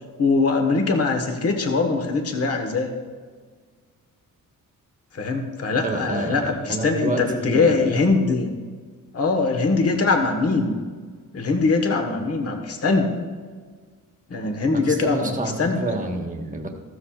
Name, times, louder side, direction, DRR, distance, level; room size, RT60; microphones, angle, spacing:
voice 1, 0.2-2.9 5.1-8.5 9.1-10.7 11.3-13.1 14.3-15.3 15.6-15.8, left 3 dB, 45° left, 4 dB, 1.3 m, -22 dB
voice 2, 5.8-8.0 14.7-16.7, right 2 dB, 25° right, 2 dB, 1.3 m, -28 dB
14.5 x 13.5 x 2.4 m, 1.6 s
wide cardioid pair, 170°, 34 cm